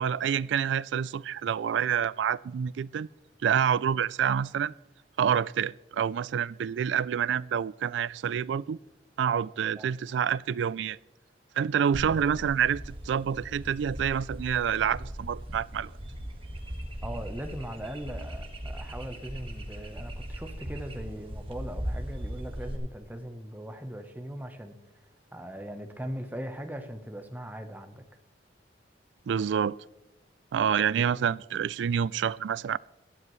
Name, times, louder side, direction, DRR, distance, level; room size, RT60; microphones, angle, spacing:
voice 1, 0.0-3.1 3.4-4.7 5.2-8.8 9.2-11.0 11.6-15.9 29.3-29.8 30.5-32.8, right 8 dB, 80° right, 0.3 m, -27 dB
sound 1, 11.9-22.8, equal, 30° right, 1.6 m, -39 dB
voice 2, 17.0-24.7 25.3-28.0, equal, 10° right, 1.0 m, -39 dB
18.0 x 12.0 x 3.2 m
head